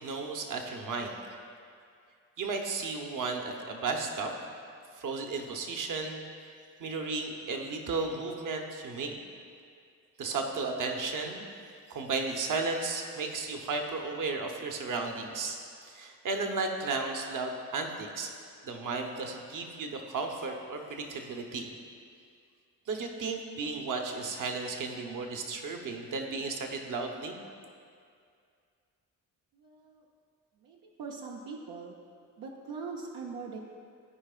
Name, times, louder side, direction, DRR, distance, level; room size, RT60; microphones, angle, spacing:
voice 1, 0.0-1.2 2.4-4.3 5.0-6.2 6.8-9.2 10.2-11.4 11.9-15.6 15.8-18.3 18.6-21.7 22.9-27.4, right 3 dB, 55° right, 3 dB, 1.0 m, -34 dB
voice 2, 29.5-30.1 30.6-32.0 32.4-33.6, right 4 dB, 80° right, -2 dB, 0.7 m, -42 dB
14.0 x 4.8 x 2.4 m, 2.3 s
supercardioid pair, 55°, 37 cm